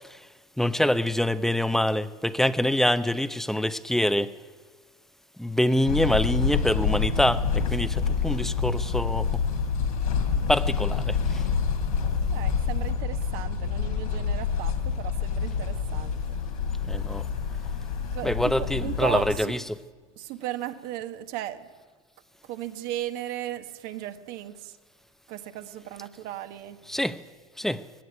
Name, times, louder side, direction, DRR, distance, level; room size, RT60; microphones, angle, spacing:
voice 1, 0.6-4.3 5.4-9.4 10.5-11.4 16.9-17.3 18.2-19.6 26.9-27.2 27.6-27.8, left 1 dB, ahead, 0.8 m, -25 dB
sound 1, 5.9-19.4, left 6 dB, 85° left, 3.3 m, -27 dB
voice 2, 12.3-16.2 18.1-19.6 20.1-21.7 22.4-24.8 25.3-26.8, right 12 dB, 55° right, 1.4 m, -36 dB
17.5 x 16.0 x 9.7 m
hypercardioid pair, 105°, 18 cm